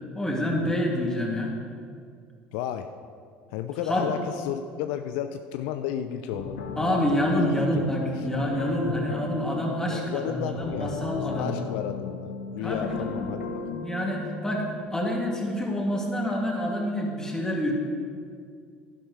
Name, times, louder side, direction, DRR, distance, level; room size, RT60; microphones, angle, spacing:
voice 1, 0.0-1.5 3.9-4.1 6.8-11.6 12.6-13.4 13.8-17.7, equal, 10° left, -2 dB, 2.6 m, -27 dB
voice 2, 2.5-2.9 3.5-6.6 7.6-7.9 8.2-8.3 9.9-13.5, left 10 dB, 65° left, 8 dB, 0.4 m, -33 dB
sound 1, 6.3-14.8, left 4 dB, 85° left, 1.1 m, -35 dB
11.5 x 11.0 x 3.3 m, 2.2 s
hypercardioid pair, 70°, 6 cm